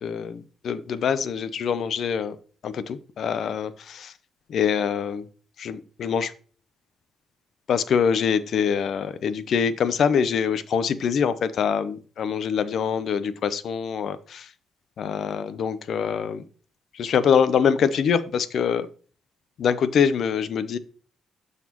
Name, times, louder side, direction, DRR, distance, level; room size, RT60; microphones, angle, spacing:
voice 1, 0.0-2.4 2.6-4.1 4.5-5.2 5.6-6.3 7.7-14.5 15.0-16.4 16.9-18.9 19.6-20.8, left 7 dB, 60° left, 14 dB, 0.6 m, -24 dB
12.0 x 4.1 x 3.0 m, 0.41 s
cardioid pair, 90°, 0 cm